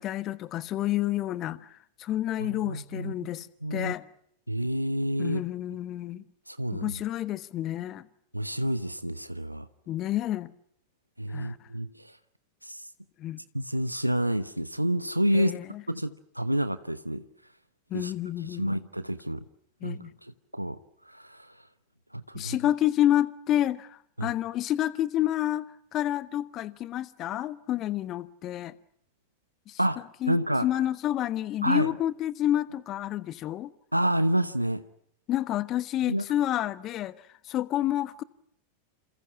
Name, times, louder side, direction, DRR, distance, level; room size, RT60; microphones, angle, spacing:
voice 1, 0.0-4.0 5.2-6.2 6.7-8.1 9.9-10.5 11.3-11.6 13.2-13.4 15.3-15.8 17.9-18.8 19.8-20.1 22.3-28.7 29.7-29.8 30.2-33.7 35.3-38.2, left 12 dB, 35° left, 1.2 m, -29 dB
voice 2, 2.4-3.3 3.6-3.9 4.5-5.4 6.5-6.9 8.3-9.7 11.2-12.1 12.6-12.9 13.5-15.5 15.9-17.3 17.9-18.1 18.4-19.4 19.8-20.8 21.1-21.5 22.1-22.6 24.2-24.3 29.8-30.7 31.6-31.9 33.9-34.8 36.1-36.2, right 1 dB, 90° right, 1.0 m, -29 dB
28.5 x 28.0 x 6.1 m
figure-of-eight pair, 90°, 0 cm